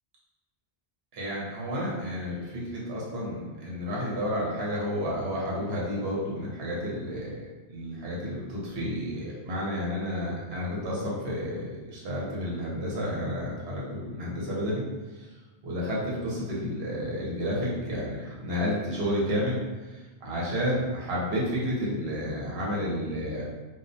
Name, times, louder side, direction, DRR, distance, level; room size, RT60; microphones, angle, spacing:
voice 1, 1.1-14.8 15.2-15.3 15.6-19.6 19.8-23.4, equal, 70° right, -5 dB, 0.9 m, -31 dB
2.3 x 2.1 x 2.5 m, 1.2 s
omnidirectional pair, 1.1 m